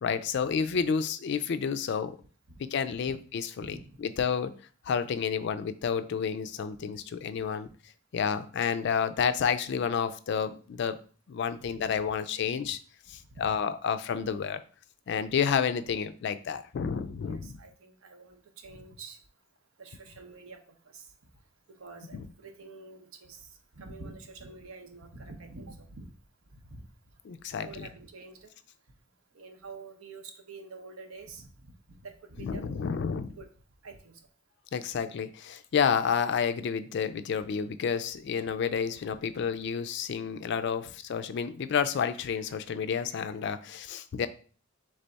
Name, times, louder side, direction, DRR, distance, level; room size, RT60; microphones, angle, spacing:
voice 1, 0.0-2.2 2.6-4.5 4.9-7.7 8.1-11.0 11.3-12.8 13.1-14.6 15.1-17.5 22.1-22.2 27.3-27.9 32.4-33.3 34.7-44.3, left 6 dB, 55° left, 12 dB, 0.3 m, -30 dB
voice 2, 3.6-4.0 7.6-7.7 11.7-11.8 13.2-13.5 17.3-19.2 19.8-21.3 21.7-26.1 26.5-27.1 27.6-28.5 29.3-33.0 33.4-33.5 33.8-34.2 40.8-40.9, right 3 dB, 85° right, 5 dB, 0.8 m, -47 dB
3.4 x 3.3 x 4.0 m, 0.41 s
head